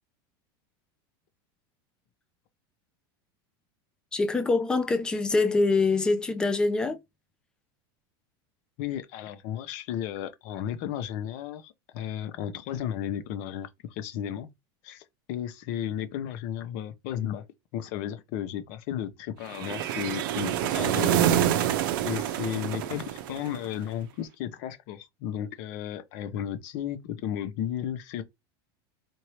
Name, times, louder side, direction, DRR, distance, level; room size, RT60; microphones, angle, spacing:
voice 1, 4.1-7.0, left 3 dB, 5° left, 0.4 m, -24 dB
voice 2, 8.8-14.5 14.8-15.0 15.3-17.4 17.7-21.2 22.0-28.2, left 10 dB, 45° left, 0.8 m, -34 dB
sound 1, 19.5-23.8, right 11 dB, 65° right, 0.6 m, -26 dB
4.4 x 2.7 x 3.1 m
supercardioid pair, 175°, 12 cm